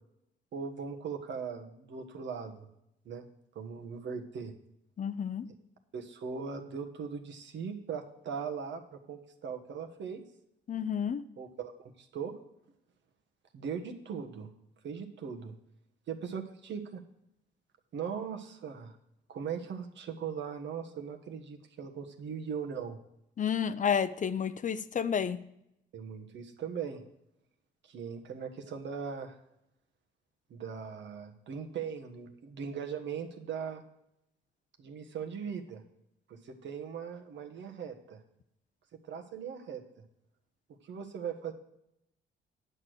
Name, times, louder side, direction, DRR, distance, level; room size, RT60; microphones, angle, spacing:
voice 1, 0.5-2.7 3.0-3.2 3.5-4.5 5.9-10.2 11.4-12.3 13.5-14.5 14.8-15.5 16.1-17.0 17.9-18.9 19.3-23.0 25.9-27.0 27.8-29.3 30.5-33.8 34.8-35.8 36.3-38.2 39.1-39.8 40.8-41.5, right 6 dB, 65° right, 5 dB, 1.4 m, -39 dB
voice 2, 5.0-5.5 10.7-11.2 23.4-25.4, left 7 dB, 40° left, 14 dB, 0.5 m, -30 dB
9.7 x 6.8 x 6.3 m, 0.80 s
cardioid pair, 90°, 20 cm